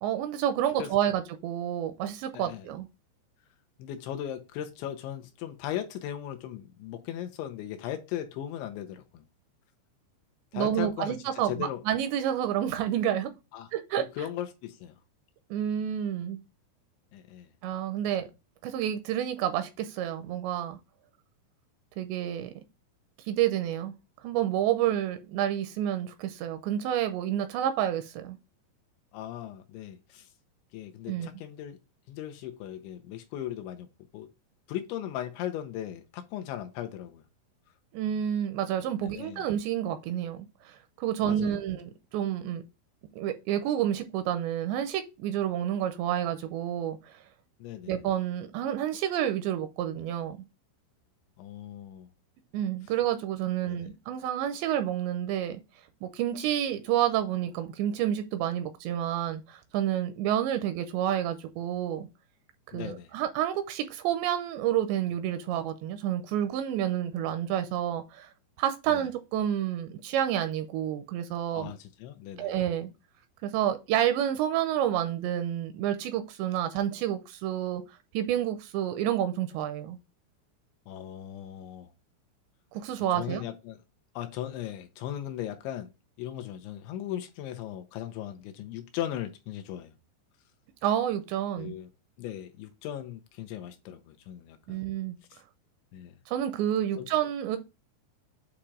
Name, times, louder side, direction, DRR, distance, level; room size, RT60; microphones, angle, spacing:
voice 1, 0.0-2.9 10.5-13.3 13.7-14.0 15.5-16.4 17.6-18.3 18.6-20.8 22.0-22.5 23.3-23.9 24.2-28.4 31.1-31.3 37.9-42.6 43.1-47.2 47.9-50.4 52.5-55.6 56.0-62.1 62.7-68.3 68.6-71.7 72.4-72.9 73.4-80.0 82.7-83.4 90.8-91.7 94.7-95.2 96.3-97.6, right 11 dB, 85° right, 2.7 m, -29 dB
voice 2, 0.8-1.1 2.3-2.7 3.8-9.2 10.5-11.8 13.5-13.7 13.9-14.9 17.1-17.5 18.2-18.3 29.1-30.3 30.7-31.8 32.1-33.9 34.1-34.3 34.7-37.2 39.0-39.5 41.2-41.6 47.6-47.9 51.4-52.1 53.6-53.9 62.7-63.1 68.9-69.0 71.5-72.5 80.9-81.9 83.2-83.8 84.2-85.9 86.2-89.9 91.5-91.9 92.2-94.9 95.3-95.4 95.9-96.2 96.9-97.1, left 11 dB, 85° left, 3.0 m, -38 dB
8.7 x 3.0 x 4.8 m
omnidirectional pair, 5.4 m